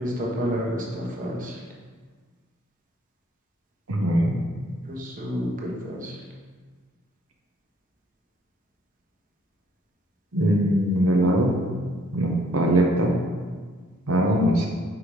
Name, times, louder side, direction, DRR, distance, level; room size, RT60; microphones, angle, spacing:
voice 1, 0.0-1.6 4.8-6.2, equal, 40° right, -3 dB, 1.2 m, -30 dB
voice 2, 3.9-4.4 10.3-11.6 12.1-13.2 14.1-14.7, right 1 dB, 90° right, -1 dB, 0.9 m, -21 dB
5.5 x 4.8 x 4.9 m, 1.5 s
head